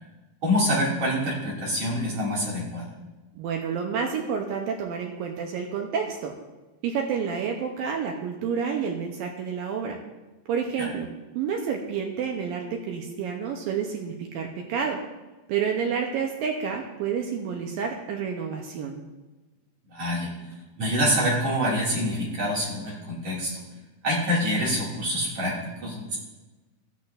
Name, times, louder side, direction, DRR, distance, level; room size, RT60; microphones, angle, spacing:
voice 1, 0.4-2.9 10.8-10.9 19.9-20.3 20.8-23.6 24.0-26.2, equal, 40° right, -5 dB, 3.2 m, -26 dB
voice 2, 3.4-6.3 6.8-10.0 10.5-11.1 11.4-15.0 15.5-19.0, right 6 dB, 75° right, 1 dB, 2.2 m, -29 dB
14.5 x 10.5 x 2.6 m, 1.2 s
omnidirectional pair, 4.9 m